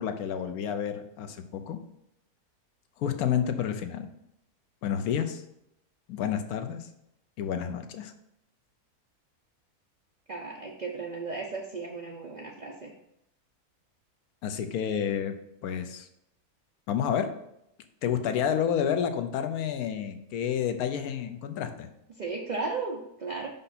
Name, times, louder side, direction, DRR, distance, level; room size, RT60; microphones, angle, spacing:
voice 1, 0.0-1.8 3.0-4.1 4.8-5.4 6.1-6.9 7.4-8.1 14.4-15.3 15.6-16.1 16.9-17.3 18.0-21.9, left 8 dB, 75° left, 8 dB, 1.1 m, -30 dB
voice 2, 10.3-12.9 22.2-23.5, right 4 dB, 55° right, 0 dB, 0.4 m, -35 dB
5.5 x 5.3 x 4.1 m, 0.80 s
omnidirectional pair, 1.6 m